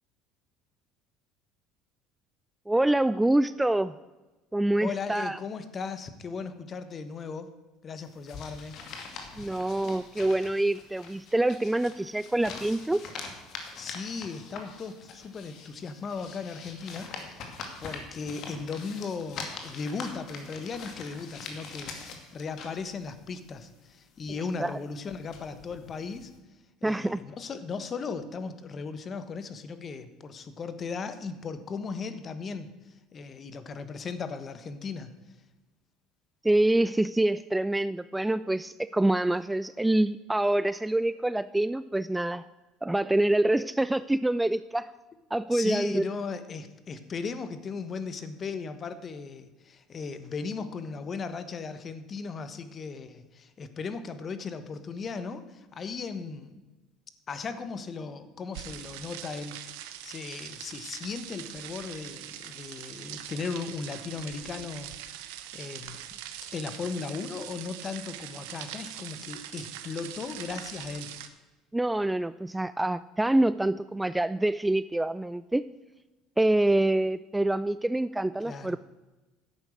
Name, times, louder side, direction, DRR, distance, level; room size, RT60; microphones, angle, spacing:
voice 1, 2.7-3.9 4.5-5.4 9.4-13.0 24.6-24.7 26.8-27.2 36.4-42.4 42.8-44.9 45.3-46.1 71.7-75.7 76.4-78.8, right 1 dB, 10° right, 15 dB, 0.3 m, -26 dB
voice 2, 4.8-7.5 7.8-8.7 13.7-22.0 22.3-26.3 26.8-35.1 45.5-56.6 57.3-59.6 60.0-65.0 65.5-66.2 66.5-71.1 78.4-78.8, left 5 dB, 35° left, 11 dB, 1.2 m, -37 dB
sound 1, 8.0-26.4, left 4 dB, 55° left, 2.2 m, -44 dB
sound 2, 58.5-71.3, right 11 dB, 80° right, 1.0 m, -42 dB
11.0 x 8.2 x 6.5 m, 1.2 s
supercardioid pair, 100°, 0 cm